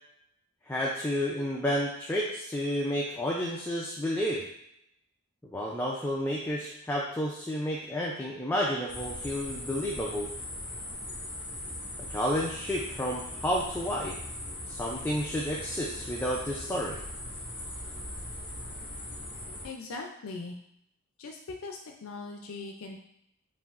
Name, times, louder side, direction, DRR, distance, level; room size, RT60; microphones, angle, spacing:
voice 1, 0.6-4.4 5.5-10.3 12.1-14.2 14.7-17.0, equal, 10° left, -4 dB, 0.4 m, -31 dB
sound 1, 8.9-19.7, left 1 dB, 45° left, 1.5 m, -40 dB
voice 2, 19.6-20.6 21.2-23.0, left 3 dB, 75° left, 2 dB, 0.4 m, -40 dB
5.5 x 2.6 x 2.4 m, 0.78 s
head